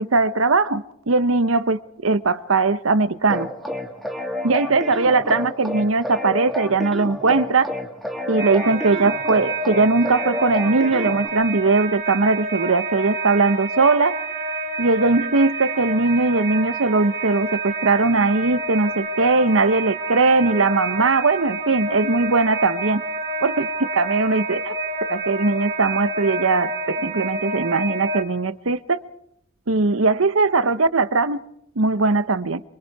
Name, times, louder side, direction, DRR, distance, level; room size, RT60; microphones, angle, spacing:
voice 1, 0.0-3.5 4.4-7.7 8.3-14.2 14.8-23.0 23.4-24.7 25.1-29.0 29.7-31.4 31.8-32.6, right 3 dB, 75° right, 0.9 m, -20 dB
sound 1, 3.3-11.3, left 1 dB, ahead, 1.7 m, -30 dB
sound 2, 8.4-28.2, right 2 dB, 40° right, 2.4 m, -28 dB
26.5 x 23.5 x 4.7 m
head